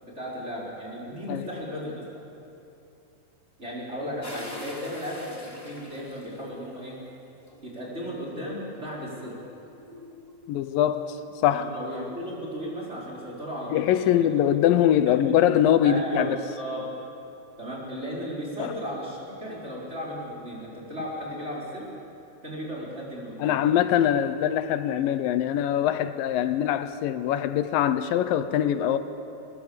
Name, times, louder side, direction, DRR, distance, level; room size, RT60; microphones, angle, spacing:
voice 1, 0.0-1.9 3.6-7.0 7.6-9.4 11.5-14.3 15.1-15.2 15.8-16.9 17.6-21.9 22.4-23.6, equal, 20° right, -5 dB, 4.8 m, -35 dB
sound 1, 4.2-6.8 7.5-10.3, left 1 dB, 5° left, 2.3 m, -45 dB
voice 2, 10.5-11.7 13.7-16.4 18.6-18.7 23.4-29.0, left 10 dB, 80° left, 12 dB, 2.5 m, -23 dB
24.5 x 20.0 x 7.2 m, 2.7 s
omnidirectional pair, 4.0 m